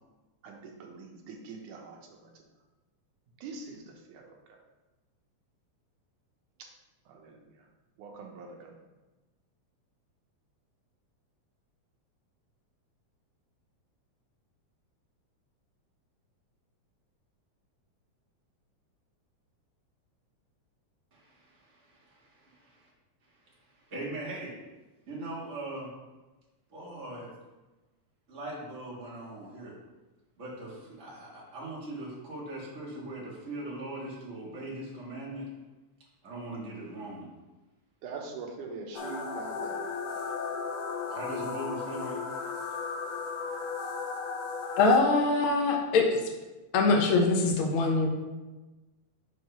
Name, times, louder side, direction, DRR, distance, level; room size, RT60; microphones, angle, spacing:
voice 1, 0.4-2.2 3.4-4.6 6.6-6.7 7.1-7.7 8.0-8.8 38.0-39.8, right 4 dB, 80° right, 1 dB, 2.5 m, -43 dB
voice 2, 21.1-22.9 23.7-24.5 25.1-25.9 26.7-27.3 28.3-29.7 30.4-35.5 36.2-37.3 41.1-42.2, right 1 dB, 30° right, -4 dB, 1.6 m, -40 dB
sound 1, 38.9-45.0, left 5 dB, 85° left, 2.2 m, -35 dB
voice 3, 44.8-46.2 46.7-48.1, left 3 dB, 65° left, 1 dB, 1.4 m, -23 dB
5.8 x 4.8 x 5.6 m, 1.1 s
omnidirectional pair, 3.5 m